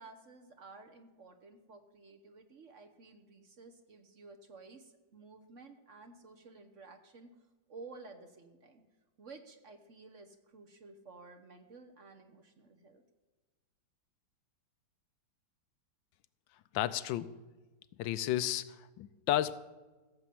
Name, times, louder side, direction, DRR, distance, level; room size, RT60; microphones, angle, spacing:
voice 1, 0.0-7.3 7.7-8.8 9.2-13.0, right 3 dB, 45° right, 6 dB, 1.2 m, -53 dB
voice 2, 16.7-17.3 18.0-19.5, left 13 dB, 85° left, 15 dB, 1.4 m, -32 dB
15.5 x 7.3 x 7.6 m, 1.2 s
omnidirectional pair, 2.1 m